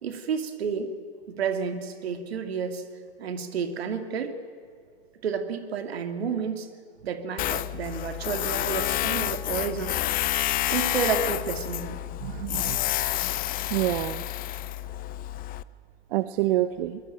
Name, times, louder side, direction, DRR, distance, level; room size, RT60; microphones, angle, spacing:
voice 1, 0.0-0.9 1.3-2.8 3.2-4.4 5.2-6.7 7.0-10.0 10.7-12.0, right 6 dB, 75° right, 9 dB, 2.7 m, -30 dB
Tools, 7.4-15.6, left 15 dB, 30° left, 0.7 m, -29 dB
voice 2, 12.2-13.0 13.7-14.2 16.1-17.0, right 15 dB, 55° right, 12 dB, 1.0 m, -27 dB
23.0 x 21.0 x 9.0 m, 2.2 s
hypercardioid pair, 110°, 31 cm